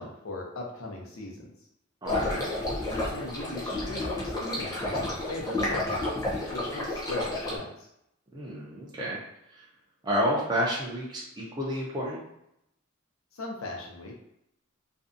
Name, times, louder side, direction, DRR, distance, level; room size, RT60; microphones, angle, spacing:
voice 1, 0.0-1.5 2.9-6.0 6.5-7.9 13.3-14.2, left 2 dB, 85° left, -1 dB, 0.7 m, -38 dB
sound 1, 2.0-7.5, left 2 dB, 20° left, 0.7 m, -31 dB
voice 2, 2.0-2.5 8.3-9.2 9.5-9.6 10.0-12.2, equal, 20° right, -5 dB, 0.5 m, -30 dB
2.6 x 2.2 x 2.5 m, 0.79 s
head